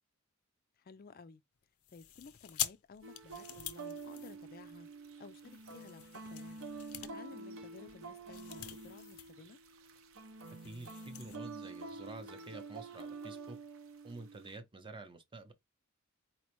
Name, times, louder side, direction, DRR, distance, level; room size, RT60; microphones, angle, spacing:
voice 1, 0.8-1.4 1.9-4.9 5.2-6.7 7.0-9.6, left 4 dB, 45° left, 0.4 m, -55 dB
sound 1, 1.8-4.9 5.5-9.4 9.6-9.8 10.1-11.4, left 11 dB, 90° left, 0.6 m, -45 dB
sound 2, 3.0-14.6, right 3 dB, 65° right, 0.7 m, -48 dB
voice 2, 10.6-13.6 14.0-15.5, right 2 dB, 25° right, 0.6 m, -49 dB
4.2 x 3.0 x 3.0 m
head